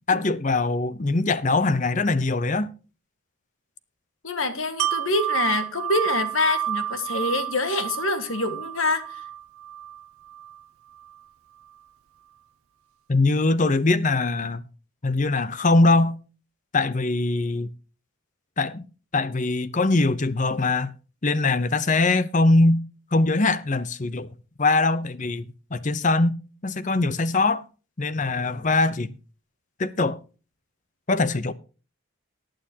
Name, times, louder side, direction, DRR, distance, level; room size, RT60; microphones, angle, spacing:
voice 1, 0.1-2.7 13.1-14.6 15.0-16.1 16.7-17.7 18.6-18.8 19.1-20.9 21.2-22.8 23.1-24.3 24.6-25.4 25.7-26.3 26.6-27.6 28.0-29.1 29.8-30.2 31.1-31.5, left 2 dB, 35° left, 0.7 m, -22 dB
voice 2, 4.2-9.1, left 2 dB, 70° left, 1.7 m, -25 dB
Wind chime, 4.8-10.6 11.0-11.1, right 11 dB, 80° right, 0.7 m, -30 dB
19.0 x 8.9 x 2.9 m
head